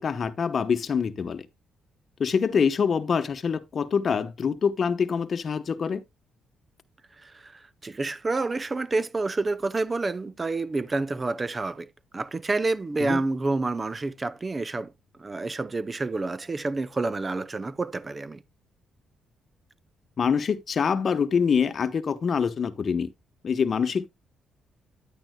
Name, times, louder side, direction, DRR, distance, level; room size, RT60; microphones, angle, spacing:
voice 1, 0.0-1.5 2.2-6.0 13.0-13.2 20.2-23.1 23.4-24.1, left 6 dB, 45° left, 1.0 m, -25 dB
voice 2, 7.2-14.9 15.2-18.4, right 3 dB, 25° right, 0.6 m, -29 dB
10.0 x 8.9 x 2.2 m
cardioid pair, 90°, 0 cm